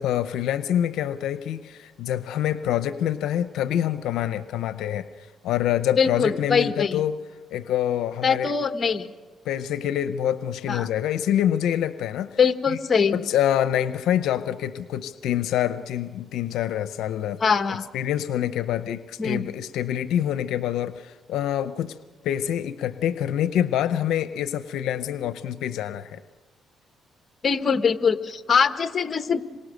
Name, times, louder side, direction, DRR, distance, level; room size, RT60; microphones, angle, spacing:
voice 1, 0.0-7.2 7.5-8.5 9.4-12.3 12.7-12.8 13.1-17.4 17.7-22.0 22.2-26.2, left 11 dB, 85° left, 12 dB, 0.7 m, -26 dB
voice 2, 6.0-7.0 8.2-9.1 10.7-10.9 12.4-13.2 17.4-17.8 19.2-19.4 27.4-29.4, left 6 dB, 40° left, 9 dB, 1.4 m, -22 dB
27.0 x 23.5 x 6.6 m, 1.4 s
cardioid pair, 90°, 0 cm